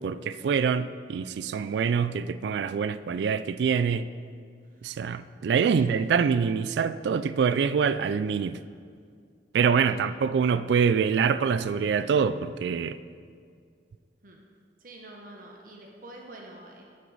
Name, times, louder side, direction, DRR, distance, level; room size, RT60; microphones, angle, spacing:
voice 1, 0.0-4.1 4.8-8.6 9.5-13.0, right 6 dB, 75° right, 14 dB, 0.3 m, -25 dB
voice 2, 4.7-5.1 5.8-5.9 9.8-10.1 14.2-14.4 14.8-16.8, right 1 dB, 50° right, 0 dB, 1.0 m, -47 dB
11.5 x 6.3 x 4.0 m, 2.2 s
head